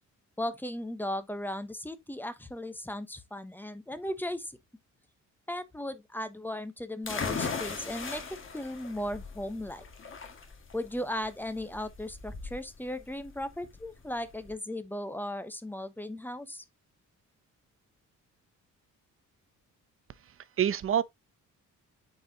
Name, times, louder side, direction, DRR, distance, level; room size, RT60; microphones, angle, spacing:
voice 1, 0.4-4.6 5.5-9.8 10.7-16.6, left 1 dB, 5° left, 0.8 m, -36 dB
sound 1, 7.1-14.5, left 5 dB, 40° left, 1.9 m, -39 dB
voice 2, 20.3-21.0, right 9 dB, 45° right, 0.6 m, -28 dB
8.7 x 4.7 x 2.7 m
cardioid pair, 145°, 32 cm